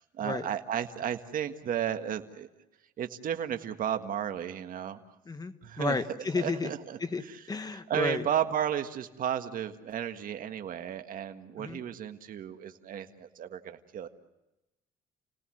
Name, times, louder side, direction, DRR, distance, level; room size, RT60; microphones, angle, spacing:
voice 1, 0.0-2.5 3.0-5.0 5.6-6.0 6.4-7.4 7.7-14.1, right 9 dB, 55° right, 7 dB, 1.7 m, -33 dB
voice 2, 5.3-6.7 7.0-7.2 7.5-8.2 11.6-11.8, left 4 dB, 20° left, 10 dB, 1.3 m, -32 dB
30.0 x 18.5 x 7.7 m, 1.0 s
cardioid pair, 110°, 17 cm